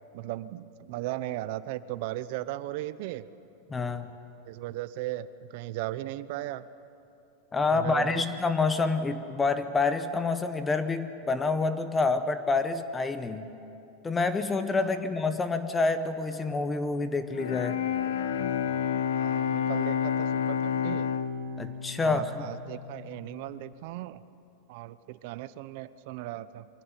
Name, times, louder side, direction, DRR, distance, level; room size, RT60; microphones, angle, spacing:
voice 1, 0.1-3.3 4.5-6.7 7.7-8.2 14.8-14.9 19.1-21.1 22.0-24.2 24.7-26.7, right 15 dB, 60° right, 15 dB, 0.7 m, -37 dB
voice 2, 3.7-4.1 7.5-13.5 14.0-17.8 21.6-22.5, left 3 dB, 15° left, 10 dB, 1.0 m, -27 dB
Bowed string instrument, 17.3-23.3, left 8 dB, 85° left, 1.2 m, -30 dB
24.0 x 17.0 x 9.0 m, 2.8 s
supercardioid pair, 140°, 0 cm